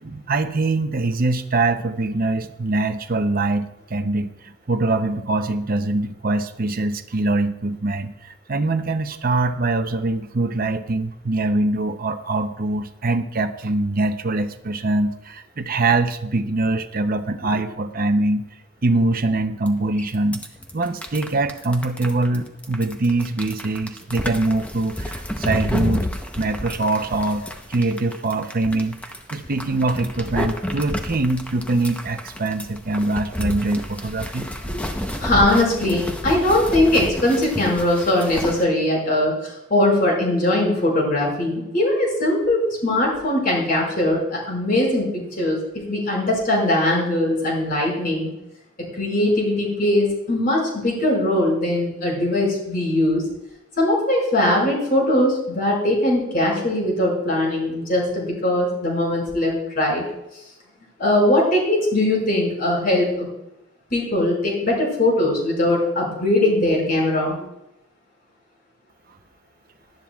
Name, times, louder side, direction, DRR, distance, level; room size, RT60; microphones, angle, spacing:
voice 1, 0.0-18.5 18.8-20.4 20.7-26.1 26.4-27.4 27.7-29.0 29.3-34.5, right 2 dB, 45° right, 8 dB, 0.7 m, -23 dB
sound 1, 19.7-19.8 20.0-38.6, left 1 dB, 5° left, 0.8 m, -30 dB
voice 2, 34.7-45.6 45.9-48.3 49.0-53.2 53.8-60.0 61.0-63.3 63.9-67.4, left 1 dB, 45° left, -2 dB, 5.4 m, -20 dB
18.5 x 12.0 x 2.4 m, 0.87 s
head